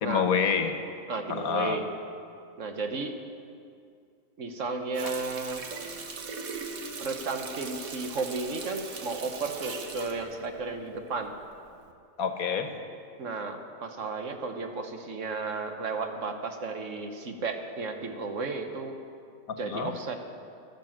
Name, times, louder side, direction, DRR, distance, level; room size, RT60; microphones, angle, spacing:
voice 1, 0.0-0.7 1.3-1.8 12.2-12.7 19.7-19.9, left 6 dB, 90° left, 7 dB, 1.5 m, -27 dB
voice 2, 1.1-1.9 2.6-3.2 4.4-5.6 7.0-11.3 13.2-19.0 19.6-20.2, right 4 dB, 65° right, 5 dB, 1.4 m, -33 dB
Water tap faucet, 4.9-11.3 11.7-11.9, right 4 dB, 80° right, 1.6 m, -40 dB
12.5 x 12.0 x 7.4 m, 2.4 s
omnidirectional pair, 1.5 m